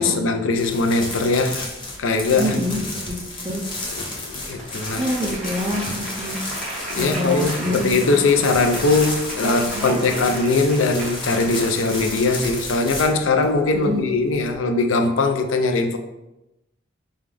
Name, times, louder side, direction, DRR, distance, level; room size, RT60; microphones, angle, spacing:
voice 1, 0.0-1.7 2.0-2.6 4.0-5.1 6.9-16.0, left 3 dB, 80° left, 5 dB, 0.5 m, -20 dB
sound 1, 0.5-14.5, left 2 dB, 25° left, 0.7 m, -33 dB
voice 2, 2.4-3.6 5.0-6.4 6.9-8.1 9.4-9.9 13.7-14.0, equal, 25° right, -3 dB, 0.4 m, -26 dB
Applause, 4.1-13.0, right 1 dB, 5° left, 1.1 m, -35 dB
5.0 x 2.3 x 3.3 m, 0.94 s
head